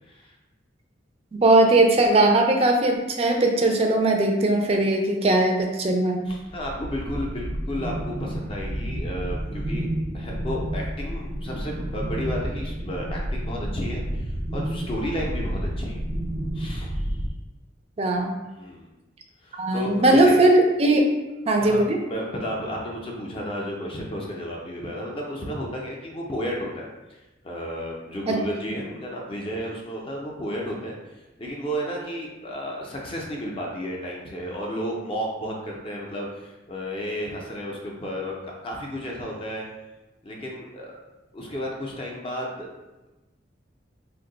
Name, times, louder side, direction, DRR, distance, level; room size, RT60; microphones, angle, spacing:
voice 1, 1.3-6.2 18.0-18.4 19.6-21.0 21.5-22.0 28.3-28.4, right 2 dB, 35° right, 2 dB, 0.4 m, -19 dB
voice 2, 6.3-9.9 10.1-16.0 16.5-17.2 18.5-18.9 19.4-20.4 21.6-27.2 27.4-31.0 31.4-39.6 40.2-41.0 41.3-42.7, equal, 30° left, -1 dB, 0.5 m, -32 dB
sound 1, 6.3-17.3, right 1 dB, 90° right, 0.6 m, -30 dB
2.6 x 2.2 x 3.8 m, 1.1 s
head